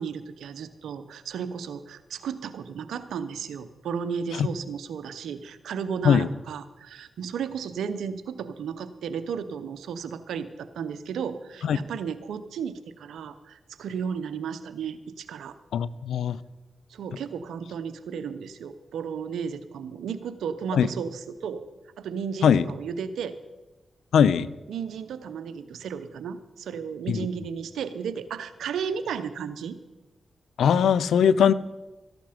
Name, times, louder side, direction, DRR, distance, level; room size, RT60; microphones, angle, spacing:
voice 1, 0.0-15.6 16.9-21.7 22.0-23.4 24.7-29.8, right 7 dB, 85° right, 12 dB, 0.7 m, -34 dB
voice 2, 15.7-16.4 20.7-20.9 22.4-22.6 24.1-24.5 27.1-27.2 30.6-31.5, left 8 dB, 85° left, 18 dB, 0.5 m, -20 dB
14.0 x 11.5 x 5.1 m, 1.1 s
supercardioid pair, 45°, 0 cm